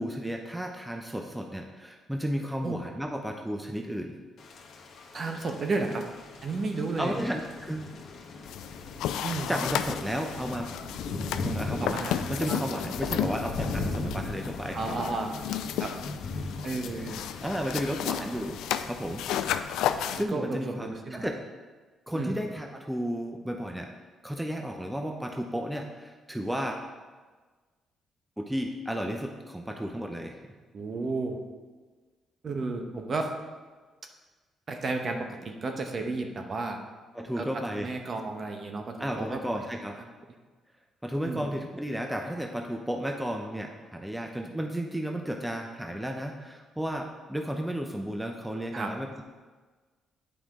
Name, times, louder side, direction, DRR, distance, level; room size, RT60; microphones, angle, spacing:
voice 1, 0.0-4.2 7.0-7.9 9.5-10.7 11.4-12.0 12.3-14.8 16.9-17.0 17.4-19.2 19.8-21.4 22.1-23.9 24.2-26.8 28.4-30.4 37.1-37.9 39.0-40.0 41.0-49.2, equal, 5° right, 3 dB, 0.6 m, -33 dB
Thunder / Rain, 4.4-20.0, left 3 dB, 65° left, 1.1 m, -39 dB
voice 2, 5.1-6.0 6.4-7.2 9.2-9.5 11.8-12.6 14.7-15.3 15.8-15.9 16.6-17.1 20.2-21.3 22.1-22.3 30.7-31.4 32.4-33.2 34.7-35.2 35.6-36.8 37.4-37.5 37.7-39.6 41.2-41.5 48.7-48.9, right 3 dB, 45° right, 4 dB, 1.0 m, -32 dB
sound 1, 8.4-20.2, left 10 dB, 90° left, 0.3 m, -33 dB
9.1 x 4.9 x 3.7 m, 1.4 s
cardioid pair, 90°, 0 cm